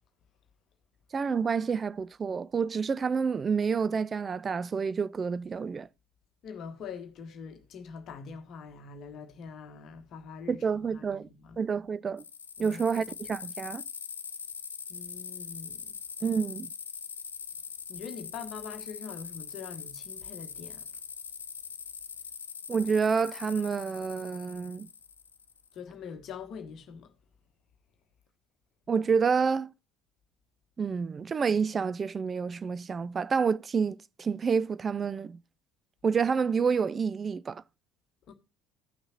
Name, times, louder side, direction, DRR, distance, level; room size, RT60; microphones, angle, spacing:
voice 1, 1.1-5.9 10.5-11.3 11.6-12.2 12.6-13.8 16.2-16.7 22.7-24.9 28.9-29.7 30.8-35.4 36.0-37.6, right 5 dB, 30° right, 0.4 m, -28 dB
voice 2, 6.4-11.6 12.6-13.0 14.9-15.8 17.9-20.9 25.7-27.1 38.3-38.4, left 6 dB, 45° left, 1.3 m, -43 dB
sound 1, 12.2-25.7, left 6 dB, 80° left, 0.4 m, -42 dB
15.5 x 6.2 x 2.9 m
figure-of-eight pair, 60°, 0 cm